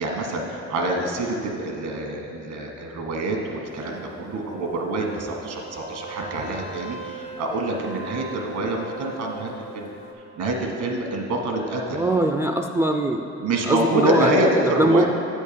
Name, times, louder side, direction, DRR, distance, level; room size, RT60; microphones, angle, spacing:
voice 1, 0.0-9.9 10.2-12.1 13.4-15.1, right 2 dB, 75° right, 1 dB, 1.4 m, -26 dB
sound 1, 3.6-10.1, right 2 dB, 70° left, 1.4 m, -40 dB
voice 2, 11.9-13.2 13.7-14.3 14.8-15.0, right 1 dB, 10° right, 3 dB, 0.3 m, -21 dB
8.2 x 4.4 x 6.9 m, 2.8 s
cardioid pair, 90°, 30 cm